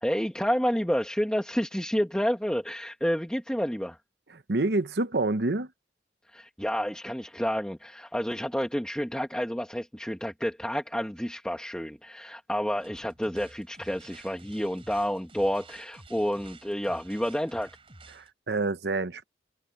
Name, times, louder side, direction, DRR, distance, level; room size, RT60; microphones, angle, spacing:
voice 1, 0.0-4.0 6.3-17.7, equal, 5° left, 1.4 m, -29 dB
voice 2, 4.3-5.7 18.1-19.2, right 2 dB, 65° right, 0.9 m, -28 dB
sound 1, 12.8-18.3, right 3 dB, 30° right, 3.8 m, -51 dB
head